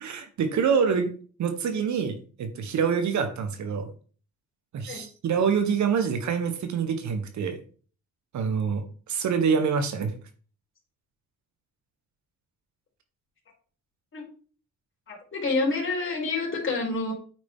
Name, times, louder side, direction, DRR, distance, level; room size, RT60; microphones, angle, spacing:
voice 1, 0.0-1.1 1.4-3.9 4.7-7.6 8.3-10.1, right 6 dB, 70° right, 7 dB, 1.5 m, -26 dB
voice 2, 15.1-17.1, left 3 dB, 40° left, -1 dB, 3.6 m, -28 dB
8.7 x 4.9 x 3.8 m, 0.40 s
cardioid pair, 90°, 30 cm